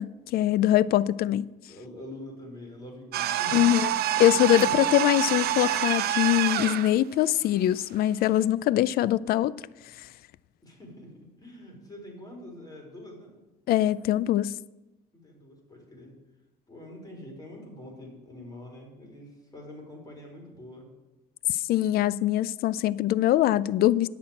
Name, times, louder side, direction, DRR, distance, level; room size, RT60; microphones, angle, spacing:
voice 1, 0.0-1.5 3.5-3.9 4.2-9.6 10.0-10.1 13.7-14.6 21.5-24.1, left 13 dB, 65° left, 0.4 m, -23 dB
voice 2, 1.7-3.7 4.6-4.9 10.6-11.1 11.4-13.3 15.1-16.1 16.7-20.9, left 1 dB, 25° left, 4.2 m, -45 dB
sound 1, 3.1-6.9, right 12 dB, 65° right, 0.6 m, -27 dB
9.9 x 6.1 x 8.7 m
cardioid pair, 110°, 17 cm